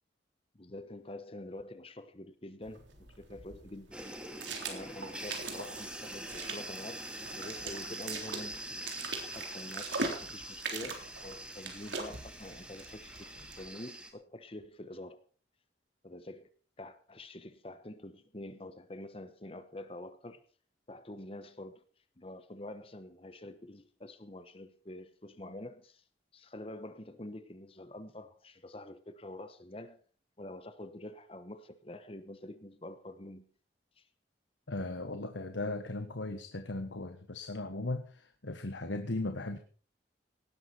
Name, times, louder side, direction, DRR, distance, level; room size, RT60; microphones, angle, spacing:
voice 1, 0.5-4.0 4.7-8.8 9.3-13.3 13.6-15.2 16.0-16.5 16.8-20.4 20.9-21.8 22.2-26.0 26.3-30.0 30.4-33.5 34.0-34.1, left 1 dB, 30° left, 1.1 m, -46 dB
sound 1, 2.6-13.7, right 4 dB, 80° right, 3.7 m, -42 dB
sound 2, 3.9-14.1, right 1 dB, 5° right, 1.9 m, -44 dB
voice 2, 34.7-39.6, left 2 dB, 85° left, 1.4 m, -37 dB
18.0 x 12.0 x 4.4 m
head